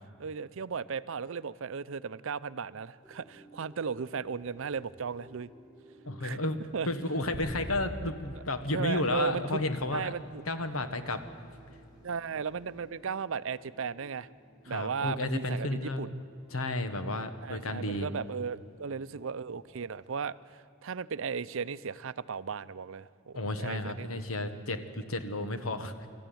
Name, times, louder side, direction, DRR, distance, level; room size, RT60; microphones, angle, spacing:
voice 1, 0.2-5.5 6.2-6.4 6.7-6.9 8.7-9.4 9.9-10.4 12.0-14.3 14.7-16.1 17.4-24.2, right 6 dB, 70° right, 16 dB, 0.6 m, -36 dB
sound 1, 3.0-20.3, right 1 dB, 20° left, 6.9 m, -58 dB
voice 2, 6.0-6.6 6.9-10.1 10.5-11.2 14.7-16.1 16.5-18.1 23.3-26.1, left 2 dB, 85° left, 9 dB, 1.4 m, -32 dB
sound 2, 7.3-9.9, equal, 35° left, 5.6 m, -43 dB
25.0 x 13.5 x 9.3 m, 2.4 s
head